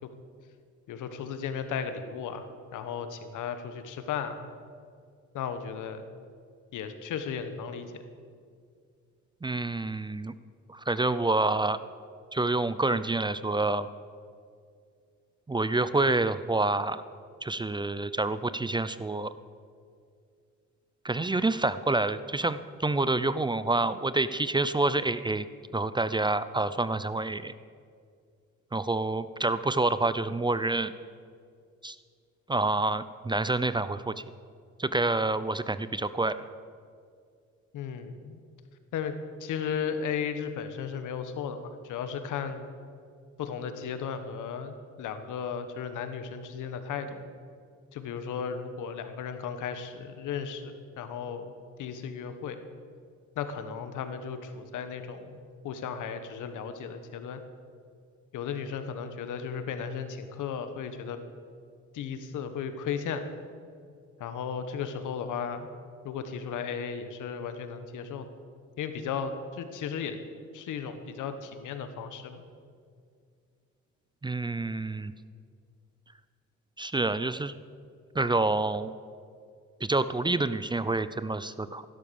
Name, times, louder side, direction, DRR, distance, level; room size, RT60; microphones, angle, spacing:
voice 1, 0.9-4.5 5.3-6.0 6.7-8.0 37.7-38.4 38.9-39.1 39.4-42.7 43.4-47.2 47.9-51.5 51.8-52.6 53.3-57.4 58.3-61.2 61.9-63.3 64.2-65.7 66.0-68.3 68.8-70.2 70.5-72.4, left 7 dB, 80° left, 9 dB, 1.4 m, -35 dB
voice 2, 9.4-10.3 10.7-11.8 12.3-13.9 15.5-17.0 17.4-19.3 21.0-25.5 25.7-27.5 28.7-30.9 31.8-32.0 32.5-34.1 34.8-36.4 74.2-75.1 76.8-77.6 78.1-78.9 79.8-81.8, right 2 dB, 15° right, 14 dB, 0.5 m, -27 dB
15.0 x 12.0 x 7.1 m, 2.2 s
cardioid pair, 90°, 30 cm